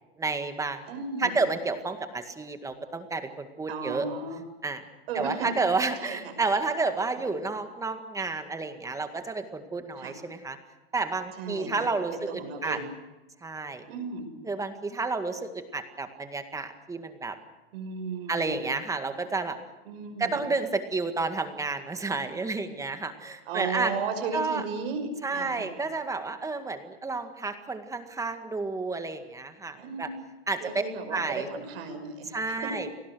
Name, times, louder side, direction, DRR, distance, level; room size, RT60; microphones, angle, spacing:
voice 1, 0.2-0.9 1.2-4.1 4.6-4.8 5.1-10.6 10.9-12.8 13.4-13.9 14.4-17.4 18.3-19.6 20.2-23.9 24.3-24.6 25.2-30.1 30.5-30.8 31.1-31.5 32.3-32.9, right 3 dB, 10° right, 7 dB, 1.9 m, -31 dB
voice 2, 0.9-1.4 3.7-4.4 5.1-5.5 6.0-6.3 7.2-7.3 10.0-10.1 11.4-11.9 12.3-12.9 13.9-14.3 17.7-18.7 19.9-20.5 23.5-25.7 29.8-30.2 30.6-32.3 32.6-32.7, right 4 dB, 65° right, 6 dB, 5.9 m, -35 dB
29.5 x 19.0 x 6.4 m, 1.1 s
hypercardioid pair, 130°, 32 cm